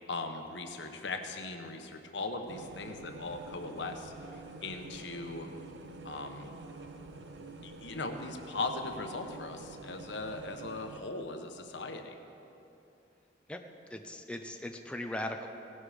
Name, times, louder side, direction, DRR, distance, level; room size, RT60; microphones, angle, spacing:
voice 1, 0.1-5.5 6.0-6.5 7.6-12.1, left 3 dB, 80° left, 5 dB, 1.1 m, -39 dB
sound 1, 2.5-11.0, right 2 dB, 75° right, 0.9 m, -47 dB
voice 2, 13.9-15.5, left 1 dB, 5° left, 4 dB, 0.6 m, -38 dB
17.0 x 11.0 x 5.0 m, 2.8 s
head